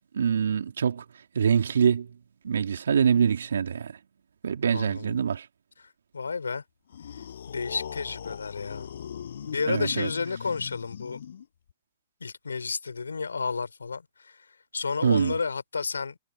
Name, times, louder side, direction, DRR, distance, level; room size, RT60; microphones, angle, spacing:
voice 1, 0.1-1.0 1.3-2.1 2.4-3.9 4.4-5.4 9.7-10.1 15.0-15.3, right 7 dB, 75° right, 3.3 m, -24 dB
voice 2, 4.7-5.2 5.8-6.6 7.5-8.9 9.4-11.2 12.2-16.2, left 5 dB, 85° left, 4.5 m, -32 dB
sound 1, 6.9-11.7, left 8 dB, 70° left, 7.0 m, -39 dB
hypercardioid pair, 120°, 0 cm